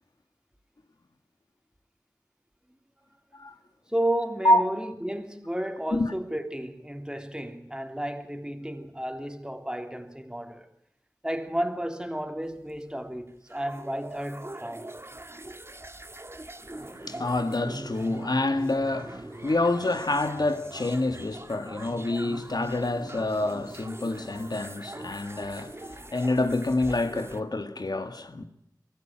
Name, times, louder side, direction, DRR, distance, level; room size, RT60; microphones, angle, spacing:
voice 1, 3.9-10.7 11.2-14.9, right 1 dB, 10° right, 3.3 m, -32 dB
sound 1, 12.4-27.4, right 1 dB, 35° right, 1.7 m, -42 dB
voice 2, 16.7-28.4, left 2 dB, 70° left, 2.0 m, -27 dB
24.0 x 16.0 x 9.0 m
wide cardioid pair, 40°, 7 cm